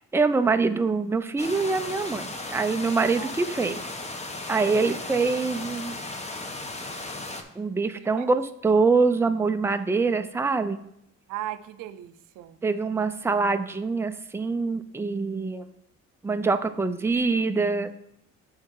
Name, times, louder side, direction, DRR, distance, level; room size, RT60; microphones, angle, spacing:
voice 1, 0.1-3.8 4.5-6.0 7.6-10.8 12.6-15.7 16.2-17.9, right 4 dB, 10° right, 8 dB, 0.4 m, -24 dB
sound 1, 1.4-7.4, left 2 dB, 20° left, 0.9 m, -36 dB
voice 2, 7.9-8.3 11.3-12.6, right 12 dB, 90° right, 12 dB, 0.5 m, -37 dB
7.5 x 3.8 x 4.6 m, 0.78 s
cardioid pair, 90°, 30 cm